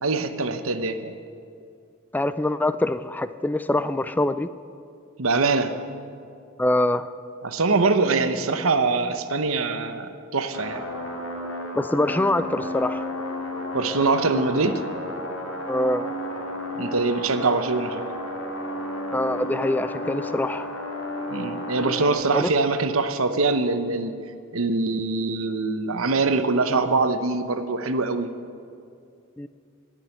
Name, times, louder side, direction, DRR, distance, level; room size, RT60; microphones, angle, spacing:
voice 1, 0.0-1.1 5.2-5.7 7.4-10.8 13.7-14.8 16.8-18.0 21.3-24.2 24.5-28.3, right 3 dB, 70° right, 9 dB, 0.9 m, -23 dB
voice 2, 2.1-4.5 6.6-7.1 11.8-13.1 15.7-16.1 19.1-20.7 22.3-22.5 29.4-29.5, left 1 dB, 10° left, 13 dB, 0.3 m, -24 dB
sound 1, 10.5-22.1, left 1 dB, 70° left, 2.0 m, -32 dB
18.0 x 6.4 x 9.7 m, 2.4 s
head